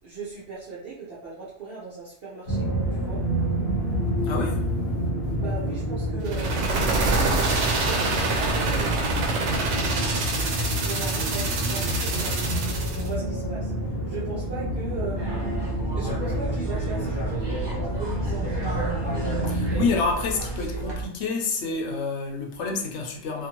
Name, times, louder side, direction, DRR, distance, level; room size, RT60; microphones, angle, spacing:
voice 1, 0.0-3.2 5.3-8.9 9.2-10.4 10.8-12.6 12.9-13.7 14.0-15.5 15.9-18.8, right 4 dB, 60° right, 0.9 m, -38 dB
sound 1, 2.5-20.0, equal, 50° left, 1.0 m, -28 dB
voice 2, 4.2-4.7 19.5-23.5, left 4 dB, 75° left, 0.9 m, -28 dB
sound 2, 6.2-13.1, right 3 dB, 85° right, 0.9 m, -26 dB
sound 3, 15.2-21.0, right 2 dB, 25° right, 0.8 m, -32 dB
2.5 x 2.5 x 2.9 m
omnidirectional pair, 1.2 m